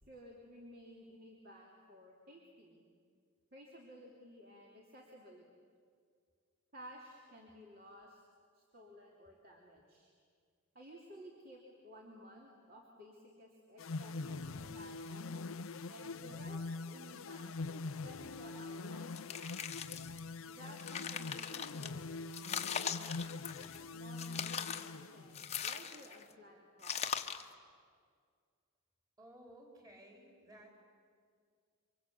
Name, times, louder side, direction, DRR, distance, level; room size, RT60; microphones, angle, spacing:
voice 1, 0.0-2.8 3.5-5.5 6.7-8.2 8.5-10.1 10.7-15.2 15.9-19.5 20.5-27.0, equal, 45° right, -2 dB, 3.0 m, -56 dB
sound 1, 13.8-25.7, left 3 dB, 80° left, 0.6 m, -44 dB
sound 2, 19.1-20.2 20.6-21.9 22.3-23.8 24.2-24.9 25.3-26.2 26.8-27.5, left 7 dB, 30° left, 1.1 m, -40 dB
voice 2, 29.2-30.8, right 1 dB, 15° right, 1 dB, 4.1 m, -57 dB
27.5 x 25.0 x 8.5 m, 2.1 s
head